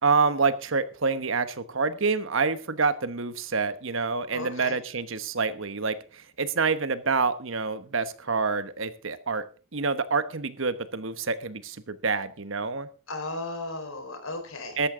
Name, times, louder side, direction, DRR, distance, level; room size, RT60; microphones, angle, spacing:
voice 1, 0.0-9.4 9.7-12.9 14.8-14.9, right 4 dB, 70° right, 12 dB, 1.1 m, -27 dB
voice 2, 4.3-4.7 13.1-14.9, left 2 dB, 90° left, 6 dB, 4.6 m, -35 dB
13.5 x 13.0 x 3.7 m, 0.35 s
head